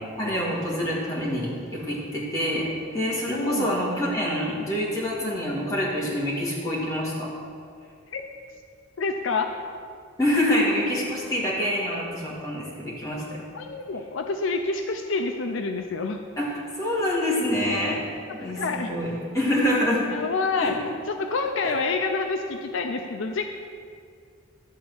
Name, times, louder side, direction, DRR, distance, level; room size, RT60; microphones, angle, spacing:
voice 1, 0.2-7.3 10.2-13.4 16.4-18.6 18.9-20.1 20.6-20.8 21.6-21.8, left 1 dB, 15° left, -6 dB, 2.0 m, -26 dB
voice 2, 3.3-3.7 8.1-8.2 9.0-9.5 13.5-16.2 18.4-18.9 20.1-20.7 21.1-23.5, left 4 dB, 65° left, 4 dB, 0.5 m, -27 dB
11.5 x 4.0 x 7.8 m, 2.2 s
head